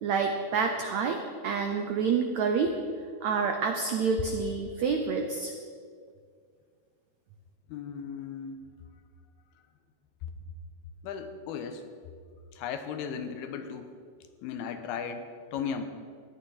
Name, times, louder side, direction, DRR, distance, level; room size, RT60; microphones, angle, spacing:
voice 1, 0.0-2.7 3.2-5.5, right 5 dB, 75° right, 4 dB, 1.7 m, -28 dB
voice 2, 7.7-8.7 11.0-11.8 12.6-13.9 14.4-15.8, left 7 dB, 90° left, 8 dB, 2.9 m, -36 dB
16.5 x 11.5 x 5.7 m, 2.1 s
omnidirectional pair, 4.3 m